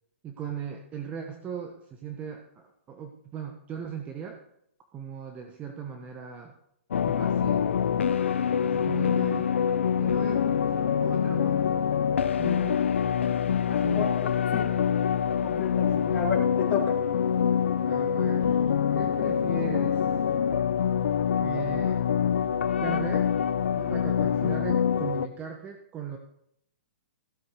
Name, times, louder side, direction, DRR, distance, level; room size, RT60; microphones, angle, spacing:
voice 1, 0.2-4.4 4.9-6.5 7.0-7.7 8.6-9.4 10.0-11.7 12.4-12.8 13.8-14.1 16.1-16.3 17.8-20.1 21.3-22.1 22.8-23.3 23.7-26.2, right 7 dB, 20° right, 4 dB, 1.4 m, -38 dB
sound 1, 6.9-25.3, left 8 dB, 75° left, 0.9 m, -25 dB
voice 2, 13.7-14.7 15.4-16.9, left 6 dB, 25° left, -4 dB, 4.0 m, -32 dB
15.5 x 7.8 x 6.6 m, 0.73 s
hypercardioid pair, 140°, 7 cm